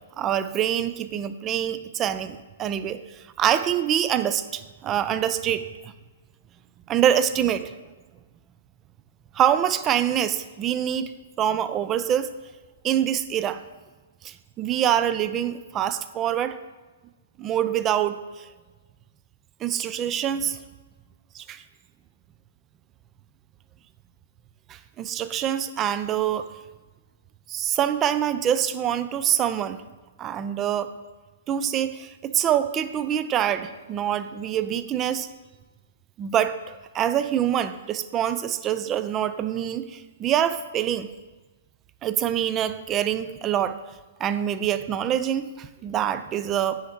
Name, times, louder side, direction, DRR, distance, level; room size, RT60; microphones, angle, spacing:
voice 1, 0.2-5.9 6.9-7.7 9.3-11.1 11.4-12.3 12.8-13.6 14.2-16.6 17.4-18.5 19.6-20.6 21.3-21.6 24.7-26.5 27.5-29.8 30.2-30.9 31.5-35.3 36.2-41.1 42.0-43.8 44.2-46.8, right 10 dB, 25° right, 13 dB, 0.4 m, -25 dB
9.3 x 4.4 x 4.4 m, 1.2 s
figure-of-eight pair, 115°, 0 cm